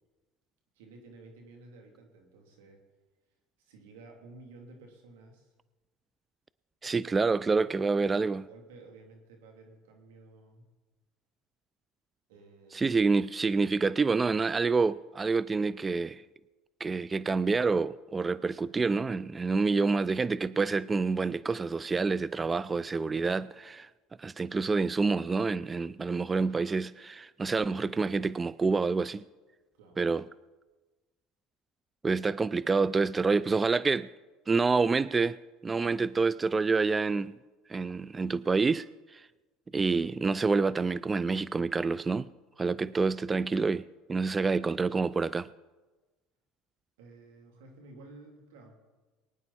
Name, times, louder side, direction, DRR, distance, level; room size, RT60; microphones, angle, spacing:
voice 1, 0.7-2.8 3.6-5.5 6.8-7.7 8.4-10.6 12.3-13.0 23.5-23.6 29.7-30.0 32.4-32.5 47.0-48.8, right 3 dB, 85° right, 3.0 m, -53 dB
voice 2, 6.8-8.5 12.7-16.2 16.8-23.9 24.2-29.2 30.0-30.2 32.0-34.1 34.5-35.4 35.6-37.3 37.7-38.9 39.1-39.2 39.7-42.3 42.6-43.8 44.1-45.5, right 4 dB, 20° right, 0.3 m, -27 dB
22.5 x 9.8 x 4.2 m
supercardioid pair, 95°, 0 cm